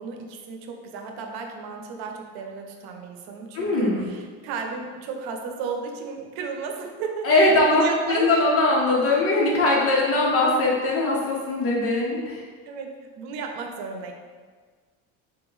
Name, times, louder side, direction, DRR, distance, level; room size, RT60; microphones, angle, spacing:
voice 1, 0.0-8.4 12.7-14.1, right 5 dB, 85° right, 3 dB, 0.7 m, -34 dB
voice 2, 3.5-4.1 7.2-12.4, left 2 dB, 35° left, -4 dB, 1.1 m, -21 dB
4.2 x 2.9 x 3.8 m, 1.5 s
cardioid pair, 135°, 37 cm